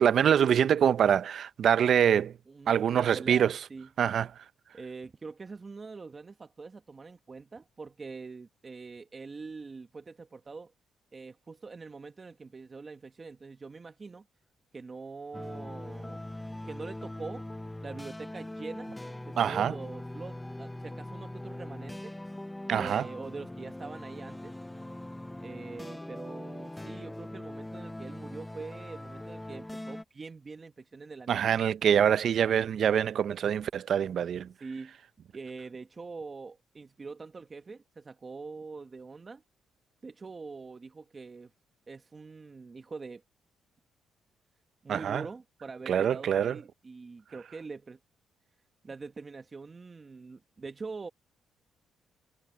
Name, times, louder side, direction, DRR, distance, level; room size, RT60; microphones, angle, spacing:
voice 1, 0.0-2.3 2.7-3.6 4.0-4.3 19.4-19.7 22.7-23.1 31.3-34.5 44.9-45.2 45.9-46.6, right 8 dB, 60° right, 0.5 m, -25 dB
voice 2, 2.5-3.9 4.7-10.7 11.1-14.2 14.7-16.2 16.6-17.5 17.8-18.9 19.3-22.1 22.7-24.5 25.4-31.6 34.6-35.0 35.3-39.4 40.0-41.5 41.9-43.2 44.8-48.0 48.8-51.1, right 4 dB, 30° right, 1.1 m, -44 dB
sound 1, 15.3-30.0, left 1 dB, 10° left, 0.5 m, -41 dB
cardioid pair, 90°, 0 cm